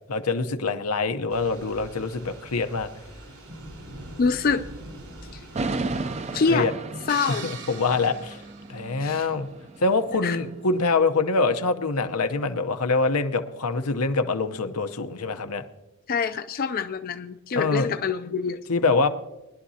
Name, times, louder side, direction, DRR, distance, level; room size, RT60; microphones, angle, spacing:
voice 1, 0.1-2.9 6.5-6.7 7.3-8.4 8.7-9.5 9.8-15.6 17.6-17.9 18.7-19.1, left 3 dB, 85° left, 8 dB, 0.9 m, -24 dB
Thunder / Rain, 1.3-6.7, right 1 dB, 70° right, 4.1 m, -43 dB
voice 2, 4.2-4.6 5.3-5.4 6.3-6.7 7.1-7.5 9.0-9.3 10.2-10.4 16.1-18.6, left 5 dB, 40° left, 9 dB, 0.4 m, -25 dB
sound 1, 5.6-10.9, right 3 dB, 30° right, 0.5 m, -35 dB
sound 2, 7.1-9.3, right 6 dB, 55° right, 1.1 m, -41 dB
20.5 x 11.0 x 2.8 m, 1.0 s
head